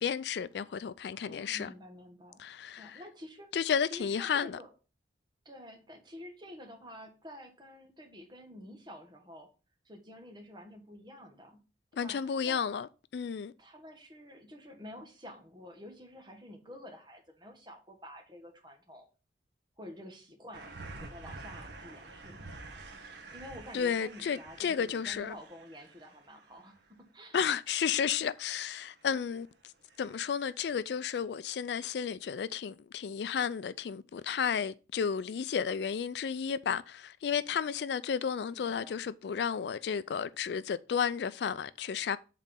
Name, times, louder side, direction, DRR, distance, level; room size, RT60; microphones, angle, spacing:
voice 1, 0.0-1.7 2.4-3.0 3.5-4.6 12.0-13.5 23.7-25.3 27.3-29.5 30.0-42.2, left 7 dB, 65° left, 0.3 m, -32 dB
voice 2, 1.1-2.4 2.8-3.5 3.9-4.7 5.4-9.5 9.8-11.6 12.0-12.7 13.6-19.0 19.8-22.5 23.3-27.4 38.5-39.0, left 1 dB, 25° right, 1.5 m, -49 dB
sound 1, 20.5-26.9 29.0-29.5 29.9-30.4 30.7-30.8, right 3 dB, 70° right, 1.2 m, -48 dB
7.6 x 4.1 x 5.2 m
head